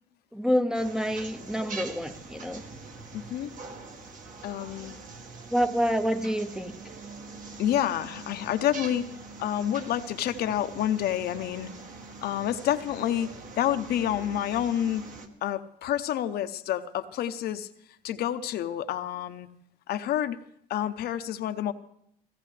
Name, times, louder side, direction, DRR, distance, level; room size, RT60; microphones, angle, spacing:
voice 1, 0.3-2.6 5.5-6.8, equal, 5° right, 9 dB, 0.7 m, -27 dB
sound 1, 0.7-15.3, right 3 dB, 50° right, 1.7 m, -44 dB
voice 2, 3.1-3.5 4.4-4.9 7.6-9.1 9.4-11.7 12.2-15.0 15.4-17.7 18.0-19.5 19.9-20.4 20.7-21.7, left 11 dB, 70° left, 9 dB, 0.8 m, -28 dB
16.5 x 16.0 x 3.3 m, 0.72 s
cardioid pair, 110°, 17 cm